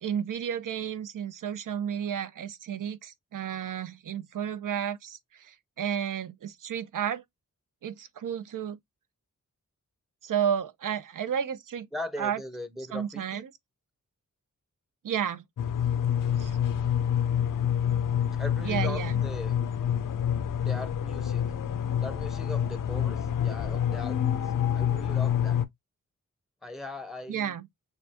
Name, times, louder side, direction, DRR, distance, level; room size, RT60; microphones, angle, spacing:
voice 1, 0.0-7.2 7.8-8.8 10.2-11.9 12.2-12.4 12.9-13.5 15.0-15.4 16.4-16.6 18.6-19.2 27.3-27.7, right 8 dB, 85° right, 0.6 m, -32 dB
voice 2, 11.9-13.4 18.3-19.6 20.6-21.4 22.0-24.4 24.7-25.6 26.6-27.6, left 1 dB, ahead, 0.6 m, -39 dB
sound 1, 15.6-25.6, left 9 dB, 90° left, 0.6 m, -27 dB
6.5 x 2.3 x 2.8 m
wide cardioid pair, 150°, 31 cm